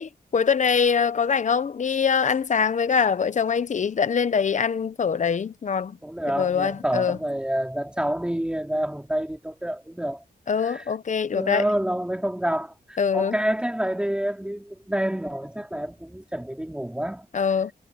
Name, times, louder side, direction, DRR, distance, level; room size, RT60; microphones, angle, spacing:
voice 1, 0.0-6.0 6.4-7.2 10.5-11.7 13.0-13.3 17.3-17.7, left 6 dB, 50° left, 0.8 m, -23 dB
voice 2, 6.0-10.2 10.6-10.9 11.3-17.5, right 1 dB, 5° right, 3.4 m, -28 dB
wide cardioid pair, 155°, 17 cm